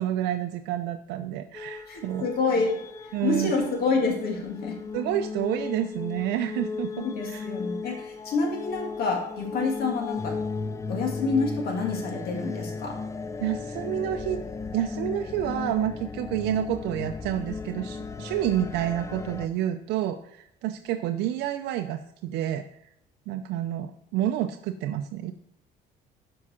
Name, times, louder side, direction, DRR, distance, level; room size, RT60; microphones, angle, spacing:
voice 1, 0.0-2.3 3.1-3.5 4.9-7.5 7.8-8.0 9.6-9.7 13.4-14.4 14.7-22.6 23.3-25.3, right 12 dB, 85° right, 6 dB, 0.4 m, -29 dB
sound 1, 1.5-19.5, left 4 dB, 15° left, 0.4 m, -36 dB
voice 2, 1.9-2.8 3.0-4.8 6.9-10.4 10.9-13.0, left 4 dB, 65° left, 1 dB, 2.0 m, -28 dB
7.3 x 4.7 x 4.3 m, 0.76 s
cardioid pair, 110°, 17 cm